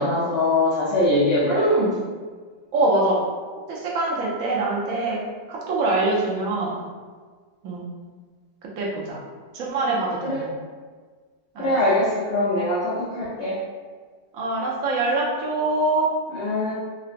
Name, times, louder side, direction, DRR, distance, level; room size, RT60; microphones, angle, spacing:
voice 1, 0.0-1.6 10.2-10.4 11.6-13.6 16.3-16.7, left 1 dB, 75° left, -9 dB, 0.5 m, -22 dB
voice 2, 1.5-2.0 2.7-3.2 3.7-5.2 5.5-6.8 7.6-7.9 8.8-9.2 9.5-10.5 11.5-11.8 14.3-16.1, right 2 dB, 60° right, -4 dB, 0.9 m, -24 dB
3.8 x 2.1 x 2.5 m, 1.5 s
omnidirectional pair, 1.9 m